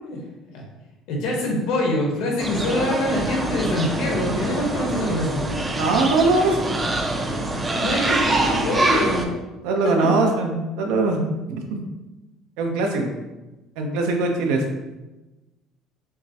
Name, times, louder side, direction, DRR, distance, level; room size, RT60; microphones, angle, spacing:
voice 1, 1.1-5.5 7.8-9.3 9.8-10.1, left 1 dB, 70° left, -1 dB, 1.0 m, -25 dB
sound 1, 2.4-9.3, right 2 dB, 15° right, 0.4 m, -25 dB
voice 2, 5.8-6.7 9.6-11.2 11.5-11.8 12.6-13.1 13.8-14.6, right 3 dB, 90° right, 3 dB, 0.6 m, -21 dB
5.7 x 2.1 x 2.8 m, 1.1 s
cardioid pair, 160°, 0 cm